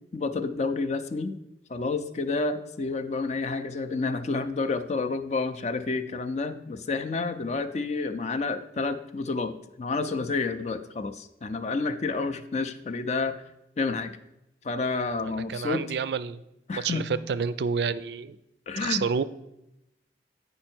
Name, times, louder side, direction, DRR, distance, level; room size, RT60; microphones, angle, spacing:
voice 1, 0.1-1.4 1.7-13.3 13.8-14.2 14.6-15.8 16.7-17.0 18.7-19.0, left 3 dB, 40° left, 10 dB, 0.4 m, -29 dB
voice 2, 15.3-16.4 16.7-18.4 18.8-19.2, right 6 dB, 65° right, 15 dB, 0.3 m, -29 dB
8.6 x 5.4 x 4.4 m, 0.88 s
head